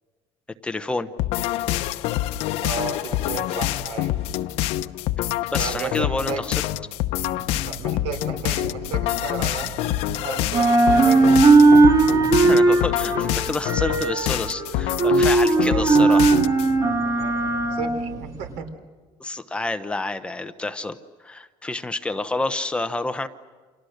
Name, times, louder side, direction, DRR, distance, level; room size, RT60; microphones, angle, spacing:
voice 1, 0.6-1.1 5.5-6.6 12.5-16.3 19.2-21.0 21.2-23.3, left 2 dB, 10° left, 9 dB, 0.8 m, -28 dB
sound 1, 1.2-16.7, left 14 dB, 75° left, 0.8 m, -26 dB
voice 2, 2.6-4.2 5.6-6.4 7.6-9.8 10.2-11.3 15.5-16.2 17.1-17.4 17.7-18.7, right 6 dB, 85° right, 8 dB, 3.7 m, -33 dB
sound 2, 7.3-10.1 10.4-18.6, right 3 dB, 30° right, 2.5 m, -18 dB
30.0 x 27.0 x 6.5 m, 1.4 s
cardioid pair, 160°, 11 cm